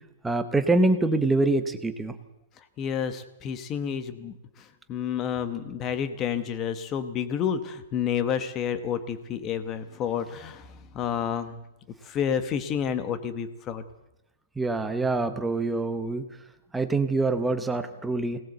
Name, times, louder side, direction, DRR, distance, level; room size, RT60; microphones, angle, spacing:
voice 1, 0.2-2.2 14.6-16.2 16.7-18.4, right 2 dB, 5° right, 9 dB, 0.8 m, -25 dB
voice 2, 2.8-11.6 12.1-13.8, left 8 dB, 15° left, 11 dB, 1.0 m, -30 dB
22.5 x 18.5 x 8.0 m, 0.89 s
hypercardioid pair, 180°, 0 cm